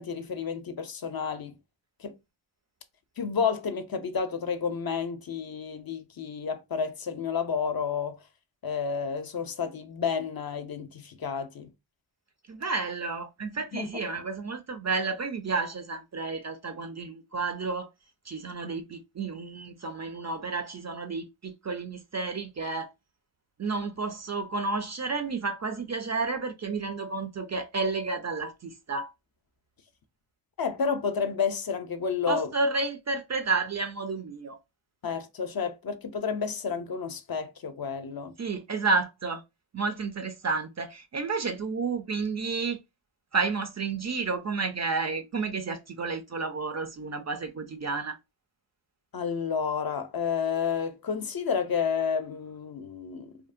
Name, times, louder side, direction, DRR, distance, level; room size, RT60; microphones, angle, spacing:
voice 1, 0.0-1.6 2.0-2.1 3.2-8.2 8.6-11.7 13.7-14.0 30.6-32.5 35.0-38.3 49.1-53.4, left 6 dB, 50° left, 0.5 m, -30 dB
voice 2, 12.5-17.9 18.3-22.9 23.6-29.1 32.3-34.6 38.4-39.4 39.7-42.8 43.3-48.2, right 4 dB, 40° right, 0.4 m, -31 dB
2.7 x 2.1 x 2.4 m
cardioid pair, 50°, 46 cm